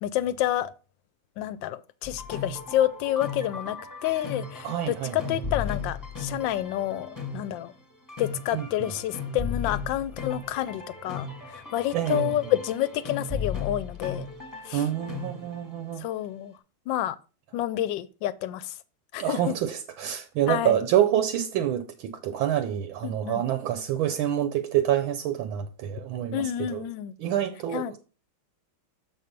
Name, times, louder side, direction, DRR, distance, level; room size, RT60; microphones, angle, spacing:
voice 1, 0.0-0.7 1.4-7.7 8.2-14.3 14.6-14.8 16.0-16.5 16.9-17.2 17.5-18.8 19.1-19.6 20.5-20.8 23.0-23.4 26.3-27.1 27.7-27.9, left 12 dB, 75° left, 1.2 m, -29 dB
sound 1, 2.0-16.0, left 4 dB, 10° left, 1.2 m, -36 dB
voice 2, 4.6-5.2 8.5-8.9 11.9-12.3 14.7-16.0 19.2-26.8 27.2-28.0, right 11 dB, 80° right, 1.5 m, -27 dB
7.3 x 4.4 x 5.2 m
omnidirectional pair, 2.3 m